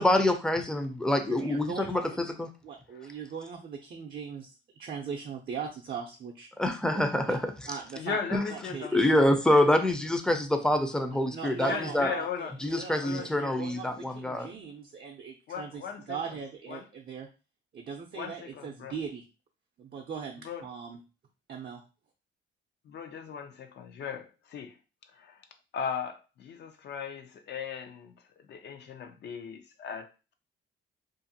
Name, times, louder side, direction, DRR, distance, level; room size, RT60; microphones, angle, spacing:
voice 1, 0.0-2.5 6.6-7.7 8.3-8.5 8.9-12.1 12.6-14.5, left 1 dB, 5° left, 0.5 m, -26 dB
voice 2, 1.3-2.0 2.6-4.5 4.8-6.5 6.9-7.4 7.7-8.2 8.5-9.3 11.3-15.8 16.1-17.3 17.7-19.2 19.8-21.0 21.5-21.8, right 6 dB, 50° right, 0.5 m, -39 dB
voice 3, 8.0-9.6 11.5-12.6 13.0-13.6 15.5-16.4 16.7-16.9 18.1-18.9 20.4-20.6 22.8-24.7 25.1-25.4 25.7-30.3, left 7 dB, 60° left, 0.5 m, -38 dB
2.5 x 2.4 x 2.6 m
cardioid pair, 90°, 20 cm